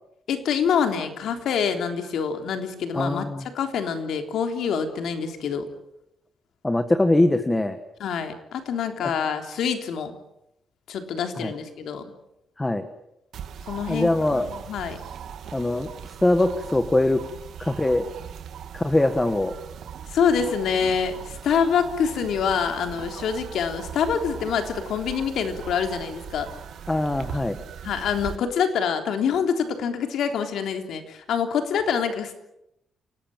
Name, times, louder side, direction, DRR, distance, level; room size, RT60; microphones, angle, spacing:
voice 1, 0.3-5.7 8.0-10.2 10.9-12.0 13.7-15.0 20.1-26.5 27.8-32.3, left 7 dB, 75° left, 6 dB, 3.5 m, -26 dB
voice 2, 2.9-3.4 6.6-7.8 9.0-9.1 11.4-11.5 12.6-12.8 13.9-14.4 15.5-17.2 17.6-18.1 18.7-19.5 26.9-27.6, left 2 dB, 10° left, 8 dB, 1.4 m, -22 dB
sound 1, 13.3-28.4, right 8 dB, 65° right, 2.1 m, -39 dB
28.0 x 19.0 x 9.0 m, 0.86 s
wide cardioid pair, 165°, 0 cm